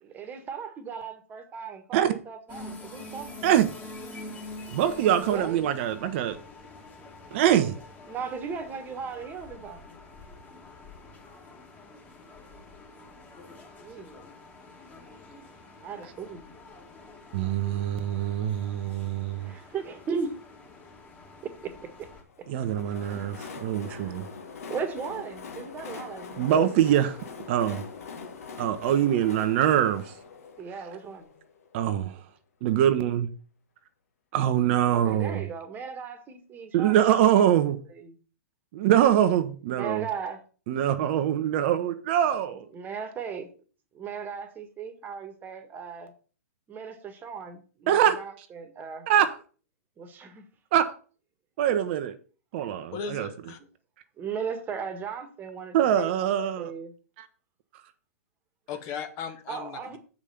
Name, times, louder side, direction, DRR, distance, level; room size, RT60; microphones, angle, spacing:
voice 1, 0.0-3.5 5.3-5.6 8.1-9.9 13.8-14.2 15.8-16.5 19.4-20.3 21.4-21.7 23.9-24.3 24.7-26.6 30.6-31.3 34.9-37.2 37.9-38.1 39.7-40.4 42.7-43.5 43.9-46.1 46.7-49.1 50.0-50.4 54.2-56.1 56.6-56.9 59.5-60.0, right 6 dB, 20° right, 1.4 m, -37 dB
sound 1, 2.5-22.2, left 2 dB, 20° left, 2.0 m, -46 dB
voice 2, 4.7-6.4 7.3-7.7 17.3-19.5 22.5-24.3 26.4-27.2 27.5-27.8 28.6-30.1 31.7-32.1 32.6-33.3 34.3-35.4 36.7-37.8 38.7-40.0 40.7-42.7 47.9-48.2 49.1-49.4 50.7-50.9 51.6-52.2 52.5-53.3 55.7-56.7 57.2-57.3, right 10 dB, 45° right, 0.8 m, -24 dB
Train, 22.3-31.9, left 5 dB, 70° left, 1.6 m, -43 dB
voice 3, 52.9-53.6 58.7-60.0, left 6 dB, 40° left, 1.3 m, -37 dB
7.2 x 5.1 x 5.7 m
hypercardioid pair, 120°, 8 cm